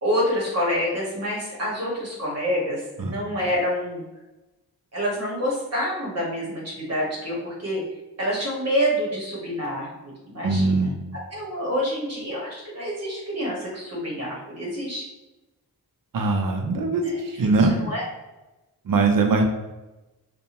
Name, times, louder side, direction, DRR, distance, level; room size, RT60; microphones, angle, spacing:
voice 1, 0.0-4.0 4.9-7.8 8.2-10.9 11.3-15.0 17.0-17.2 17.6-18.0, equal, 40° right, -4 dB, 1.0 m, -27 dB
voice 2, 10.4-11.0 16.1-17.0 17.4-17.8 18.9-19.4, right 3 dB, 55° right, 3 dB, 0.5 m, -21 dB
2.6 x 2.2 x 2.9 m, 1.0 s
wide cardioid pair, 110°, 39 cm